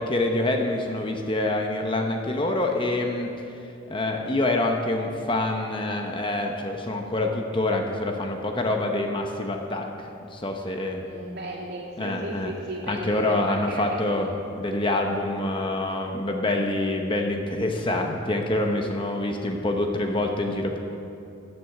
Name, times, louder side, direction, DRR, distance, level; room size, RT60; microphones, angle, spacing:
voice 1, 0.0-3.3 3.9-9.9 10.3-11.0 12.0-12.5 12.9-14.3 14.5-20.8, left 2 dB, 25° left, 3 dB, 0.8 m, -26 dB
voice 2, 11.0-14.3, right 1 dB, 55° right, -4 dB, 2.7 m, -35 dB
13.5 x 7.9 x 6.8 m, 2.6 s
head